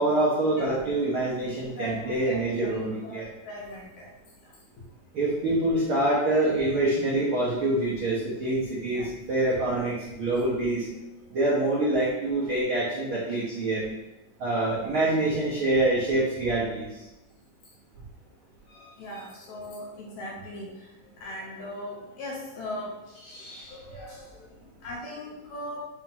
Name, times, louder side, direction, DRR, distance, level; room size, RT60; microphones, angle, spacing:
voice 1, 0.0-3.3 5.1-10.9 11.3-13.8 14.4-17.1, right 2 dB, 85° right, -6 dB, 1.1 m, -26 dB
voice 2, 1.8-4.1 4.4-4.5 8.9-9.1 18.7-20.9 21.2-25.8, left 1 dB, 70° left, -3 dB, 2.1 m, -39 dB
5.8 x 3.0 x 5.4 m, 0.99 s
omnidirectional pair, 4.1 m